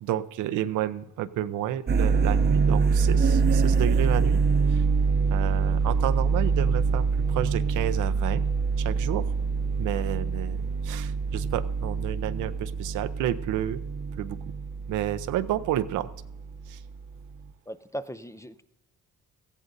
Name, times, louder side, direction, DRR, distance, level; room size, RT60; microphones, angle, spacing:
voice 1, 0.0-4.4 4.7-4.8 5.3-8.4 8.8-9.3 9.8-13.8 14.2-14.4 14.9-16.1 16.7-16.8, right 12 dB, 90° right, 11 dB, 0.6 m, -30 dB
sound 1, 1.9-17.0, right 5 dB, 35° right, 0.7 m, -25 dB
voice 2, 17.7-18.6, equal, 10° left, 12 dB, 0.4 m, -38 dB
18.5 x 14.0 x 2.6 m, 0.88 s
cardioid pair, 90°, 30 cm